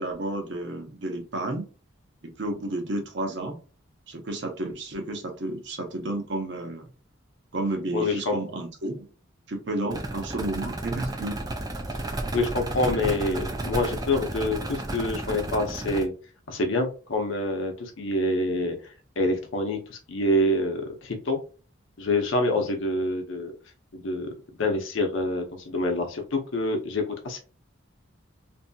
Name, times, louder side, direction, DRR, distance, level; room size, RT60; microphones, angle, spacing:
voice 1, 0.0-1.7 2.2-3.6 4.1-6.9 7.5-9.1 9.5-11.4, right 2 dB, 55° right, 3 dB, 0.6 m, -31 dB
voice 2, 7.9-8.4 12.3-16.1 16.5-18.8 19.2-21.4 22.0-23.5 23.9-24.3 24.6-27.4, left 1 dB, 70° left, 4 dB, 0.6 m, -26 dB
sound 1, 9.9-16.0, right 2 dB, 20° right, 0.3 m, -32 dB
2.7 x 2.6 x 2.2 m, 0.35 s
head